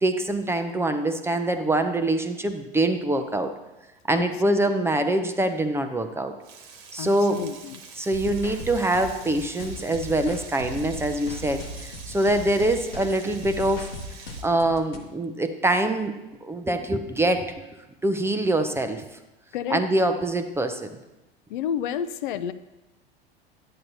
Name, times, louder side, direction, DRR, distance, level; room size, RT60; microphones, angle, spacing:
voice 1, 0.0-3.5 4.0-6.3 6.9-7.4 8.0-13.9 14.4-16.1 16.4-17.5 18.0-19.0 19.7-20.9, right 1 dB, 10° right, 7 dB, 0.5 m, -24 dB
voice 2, 4.1-4.6 7.0-7.8 19.5-19.8 21.5-22.5, left 9 dB, 55° left, 13 dB, 0.5 m, -30 dB
Frying (food), 6.4-14.4, right 5 dB, 50° right, 1.3 m, -46 dB
sound 1, 8.1-15.0, left 1 dB, 75° left, 1.0 m, -38 dB
10.5 x 8.6 x 2.7 m, 1.0 s
figure-of-eight pair, 80°, 30 cm